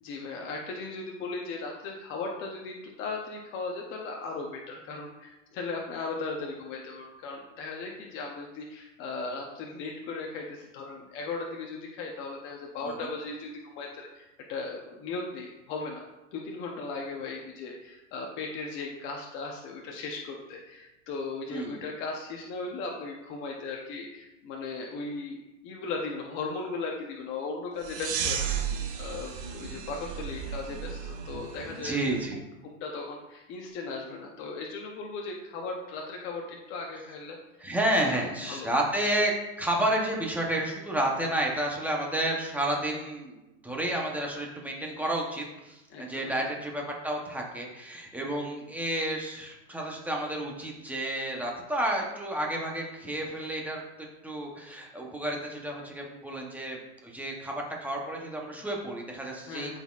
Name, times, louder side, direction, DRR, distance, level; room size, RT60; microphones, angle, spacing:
voice 1, 0.0-16.0 16.3-25.4 25.6-32.2 32.6-37.4 38.0-38.7 45.9-46.4 59.5-59.8, left 3 dB, 30° left, 0 dB, 0.7 m, -37 dB
voice 2, 21.5-21.8 31.8-32.4 37.6-53.8 54.2-57.5 57.8-59.8, right 1 dB, 5° right, -1 dB, 0.8 m, -31 dB
sound 1, 27.8-32.2, right 7 dB, 75° right, 1.9 m, -34 dB
12.0 x 4.2 x 2.4 m, 0.99 s
supercardioid pair, 145°, 39 cm